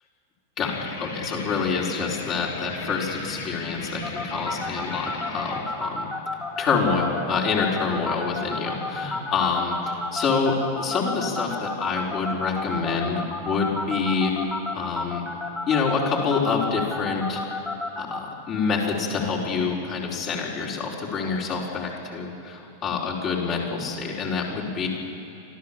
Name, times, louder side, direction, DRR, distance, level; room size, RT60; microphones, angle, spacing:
sound 1, 0.6-5.6, left 3 dB, 65° left, 3.6 m, -36 dB
voice 1, 0.6-6.1 6.6-14.3 14.7-15.2 15.7-17.4 18.0-24.9, left 5 dB, 35° left, -2 dB, 4.5 m, -27 dB
sound 2, 4.0-18.2, left 2 dB, 15° left, 3.0 m, -30 dB
25.5 x 14.5 x 7.4 m, 2.9 s
figure-of-eight pair, 90°, 0 cm